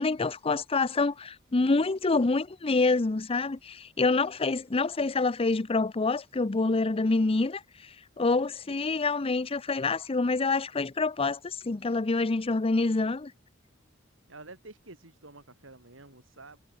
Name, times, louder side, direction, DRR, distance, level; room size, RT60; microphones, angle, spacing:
voice 1, 0.0-7.6 8.2-13.3, left 3 dB, 30° left, 0.6 m, -26 dB
voice 2, 14.3-16.6, right 2 dB, 70° right, 4.2 m, -49 dB
head